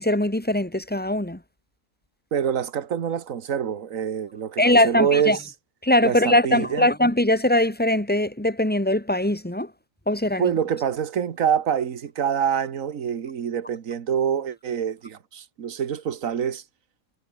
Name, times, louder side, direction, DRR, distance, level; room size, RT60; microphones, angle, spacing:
voice 1, 0.0-1.4 4.6-5.4 5.8-9.7 10.1-10.5, left 1 dB, 5° left, 2.5 m, -21 dB
voice 2, 2.3-5.5 6.0-6.9 10.4-16.6, right 8 dB, 75° right, 1.7 m, -26 dB
omnidirectional pair, 1.4 m